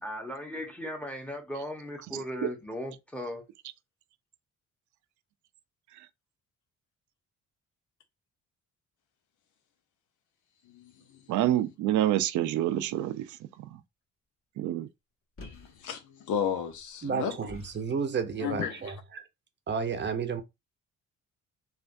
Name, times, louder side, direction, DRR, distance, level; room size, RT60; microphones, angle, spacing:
voice 1, 0.0-3.4, equal, 5° left, 1.0 m, -37 dB
voice 2, 11.3-13.3 14.6-14.9, right 13 dB, 75° right, 0.4 m, -27 dB
voice 3, 15.4-17.4 18.4-18.7, left 8 dB, 80° left, 0.8 m, -33 dB
sound 1, 15.4-15.9 16.6-18.0 18.8-18.9, left 2 dB, 50° left, 1.8 m, -48 dB
voice 4, 17.0-19.3 19.7-20.4, right 6 dB, 35° right, 0.7 m, -32 dB
3.3 x 2.5 x 2.5 m
cardioid pair, 90°, 30 cm